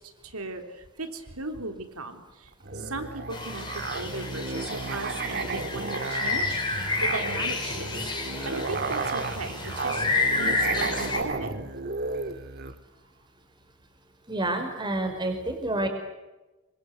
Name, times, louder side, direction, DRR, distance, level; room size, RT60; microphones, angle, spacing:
voice 1, 0.0-8.1 8.4-11.6, right 3 dB, 85° right, 6 dB, 3.8 m, -37 dB
Musical instrument, 2.6-12.8, right 3 dB, 45° right, 1.8 m, -33 dB
sound 1, 3.3-11.2, left 3 dB, 20° left, 5.1 m, -30 dB
voice 2, 14.3-15.9, right 2 dB, 20° right, 5 dB, 5.2 m, -28 dB
28.0 x 25.5 x 8.2 m, 1.1 s
head